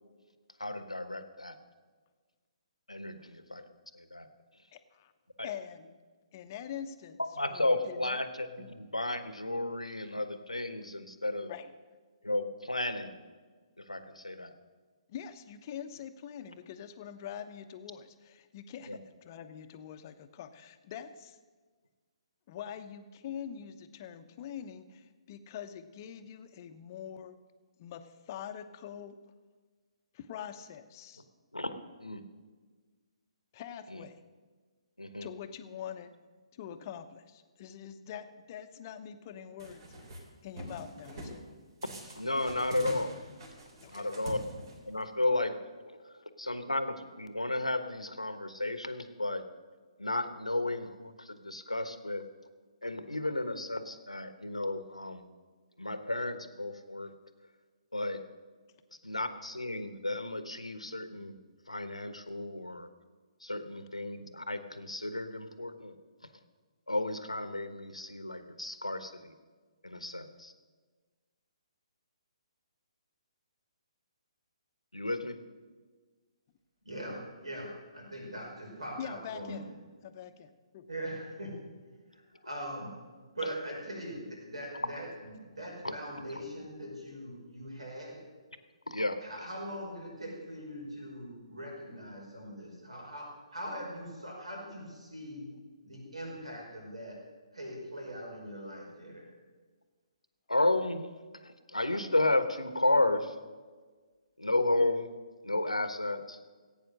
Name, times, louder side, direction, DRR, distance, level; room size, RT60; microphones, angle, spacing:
voice 1, 0.6-1.5 2.9-3.6 3.9-4.3 5.4-5.5 7.4-11.5 12.2-13.2 13.8-14.5 18.9-19.0 31.5-32.2 33.9-34.0 35.0-35.3 42.1-43.1 43.9-44.4 44.8-45.6 46.4-49.4 50.0-52.2 52.8-55.2 55.8-57.1 57.9-58.2 59.0-61.4 61.7-62.9 63.4-65.9 66.9-69.3 69.8-70.5 74.9-75.4 85.8-85.9 88.9-89.2 100.5-101.1 101.4-103.3 104.4-105.1 105.4-106.4, left 2 dB, 90° left, 10 dB, 1.2 m, -33 dB
voice 2, 4.7-5.1 5.4-6.0 6.3-7.2 7.5-8.3 8.6-8.7 11.5-11.7 15.1-21.4 22.5-27.4 27.8-29.2 30.1-31.2 33.5-34.1 35.2-36.1 36.5-41.4 43.8-44.1 79.0-79.7 80.0-80.9, left 9 dB, 35° left, 9 dB, 0.9 m, -44 dB
sound 1, 39.6-40.2 40.6-41.4 41.8-45.0, equal, 50° right, 3.4 m, -45 dB
voice 3, 76.8-79.7 80.9-81.6 82.1-82.9 83.3-88.2 89.2-95.5 95.8-97.2 97.5-99.3, equal, 80° right, -1 dB, 5.4 m, -41 dB
16.5 x 8.8 x 6.5 m, 1.4 s
figure-of-eight pair, 135°, 3 cm